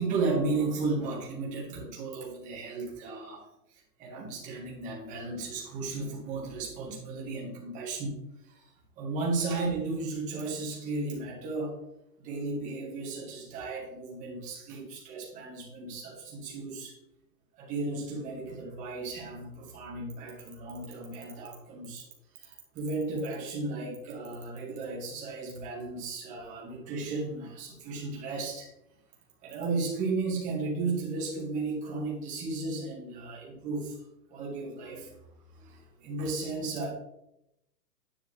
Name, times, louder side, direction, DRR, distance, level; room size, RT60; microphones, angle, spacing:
voice 1, 0.0-8.7 9.0-11.8 12.2-16.9 17.6-22.1 22.3-28.7 29.4-34.0 34.3-35.2 35.6-36.9, right 3 dB, 15° right, -3 dB, 1.7 m, -34 dB
10.0 x 5.8 x 3.4 m, 0.85 s
hypercardioid pair, 170°, 48 cm